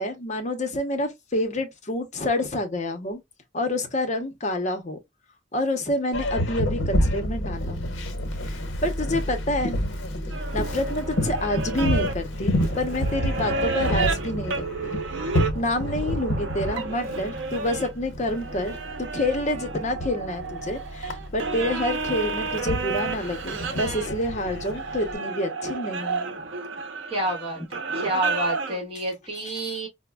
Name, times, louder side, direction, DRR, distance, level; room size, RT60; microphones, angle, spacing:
voice 1, 0.0-3.2 3.5-5.0 5.5-8.0 8.8-9.8 10.5-15.0 15.5-26.3 28.9-29.0 29.5-29.7, left 1 dB, 40° left, 0.7 m, -28 dB
Boat Water vehicle, 6.1-25.1, equal, 90° left, 0.8 m, -29 dB
sound 1, 10.3-17.9 18.3-28.8, right 4 dB, 80° right, 0.7 m, -32 dB
voice 2, 27.1-29.9, right 1 dB, 30° right, 1.4 m, -29 dB
5.0 x 2.1 x 2.2 m
head